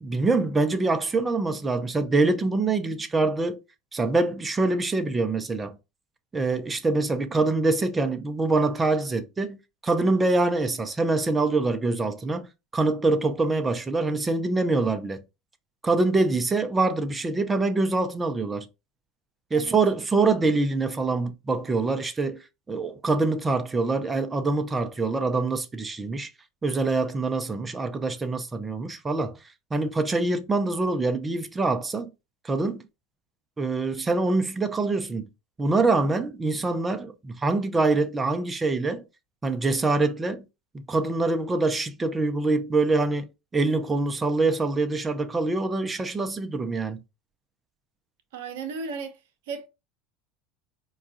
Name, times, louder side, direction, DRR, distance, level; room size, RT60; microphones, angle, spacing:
voice 1, 0.0-3.6 3.9-5.8 6.3-9.6 9.8-12.5 12.7-15.2 15.8-18.7 19.5-22.4 22.7-26.3 26.6-29.4 29.7-32.1 32.4-32.8 33.6-35.3 35.6-39.0 39.4-40.4 40.7-43.3 43.5-47.0, right 3 dB, 20° right, 0.5 m, -25 dB
voice 2, 48.3-49.1 49.5-49.7, right 5 dB, 70° right, 0.6 m, -34 dB
4.6 x 2.3 x 2.6 m
hypercardioid pair, 80°, 0 cm